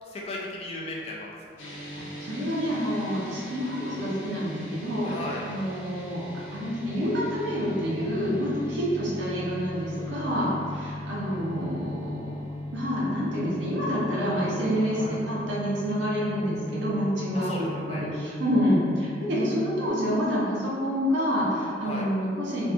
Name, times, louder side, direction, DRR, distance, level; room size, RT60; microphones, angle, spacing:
voice 1, 0.0-1.4 5.0-5.4 15.0-15.1 17.3-18.0 21.8-22.1, left 1 dB, 30° left, -3 dB, 0.3 m, -36 dB
sound 1, 1.6-19.9, left 1 dB, 90° left, 0.6 m, -38 dB
voice 2, 2.2-5.2 5.4-6.2 6.5-12.4 12.7-22.7, equal, 80° right, -7 dB, 0.7 m, -28 dB
2.6 x 2.3 x 2.5 m, 2.3 s
head